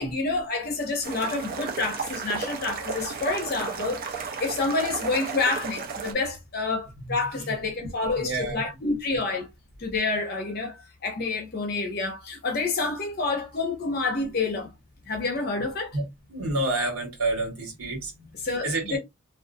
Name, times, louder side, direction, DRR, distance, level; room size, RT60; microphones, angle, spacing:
voice 1, 0.0-9.5 9.8-14.7 15.1-16.0 18.4-19.0, left 3 dB, 45° left, 0.6 m, -28 dB
sound 1, 1.0-6.1, right 5 dB, 40° right, 0.5 m, -34 dB
voice 2, 8.2-8.6 15.9-16.0 16.3-18.3 18.6-19.0, right 2 dB, 80° right, 1.4 m, -28 dB
2.4 x 2.4 x 2.5 m
head